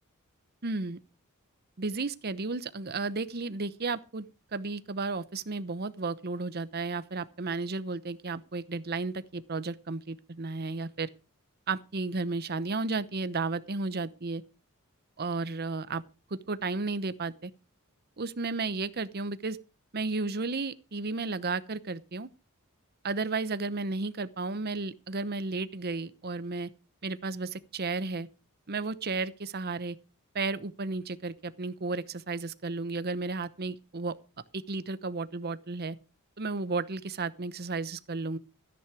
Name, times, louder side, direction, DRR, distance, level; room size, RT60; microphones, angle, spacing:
voice 1, 0.6-1.0 1.8-4.3 4.5-11.1 11.7-14.4 15.2-16.0 16.3-17.5 18.2-19.6 19.9-22.3 23.0-26.7 27.0-28.3 28.7-30.0 30.3-34.2 34.5-36.0 36.4-38.4, right 3 dB, 50° right, 0.9 m, -33 dB
13.5 x 10.0 x 4.9 m
head